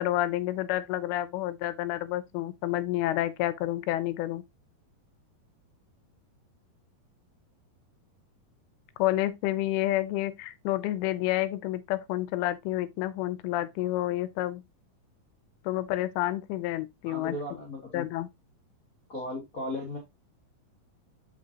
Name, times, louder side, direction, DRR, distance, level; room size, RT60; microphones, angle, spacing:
voice 1, 0.0-4.4 9.0-14.6 15.7-17.4 17.9-18.3, left 15 dB, 85° left, 2.5 m, -29 dB
voice 2, 17.0-18.0 19.1-20.0, left 1 dB, 55° left, 0.9 m, -36 dB
6.3 x 5.9 x 2.8 m
omnidirectional pair, 4.3 m